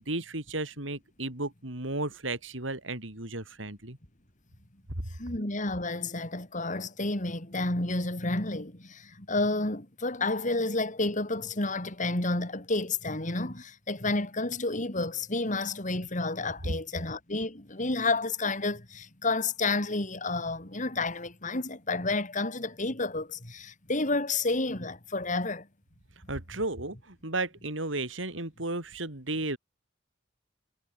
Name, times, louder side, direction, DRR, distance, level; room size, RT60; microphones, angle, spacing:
voice 1, 0.0-4.0 5.0-5.1 26.3-29.6, right 2 dB, 80° right, 5.0 m, -34 dB
voice 2, 5.2-25.7, left 2 dB, 40° left, 3.6 m, -30 dB
head